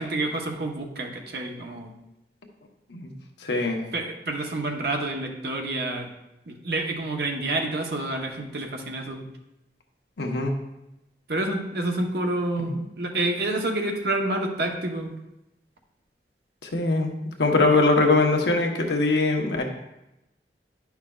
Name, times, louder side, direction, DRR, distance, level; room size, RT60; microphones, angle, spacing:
voice 1, 0.0-1.9 3.9-6.1 6.5-9.2 11.3-15.1, right 2 dB, 65° right, 2 dB, 0.9 m, -28 dB
voice 2, 3.4-3.8 10.2-10.5 12.6-12.8 16.6-17.1 17.4-19.6, left 3 dB, 85° left, 2 dB, 1.0 m, -22 dB
9.7 x 5.8 x 2.3 m, 0.91 s
head